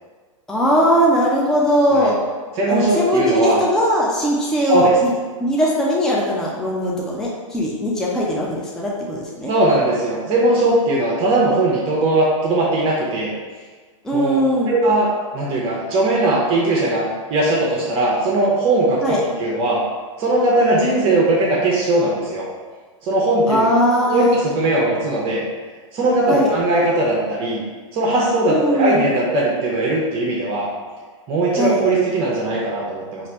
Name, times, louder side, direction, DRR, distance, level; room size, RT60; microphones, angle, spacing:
voice 1, 0.5-2.2 2.7-5.1 5.4-9.5 14.0-14.7 19.0-19.2 23.5-24.3 26.3-26.5 28.5-29.1 31.6-31.8, equal, 5° left, -5 dB, 0.4 m, -19 dB
voice 2, 2.6-3.6 4.6-5.0 9.4-13.3 14.1-14.4 14.7-19.8 20.2-22.5 23.0-23.7 24.1-25.4 25.9-27.6 27.9-30.7 31.3-33.3, right 2 dB, 35° right, -3 dB, 0.7 m, -19 dB
3.2 x 2.5 x 4.2 m, 1.4 s
hypercardioid pair, 130°, 18 cm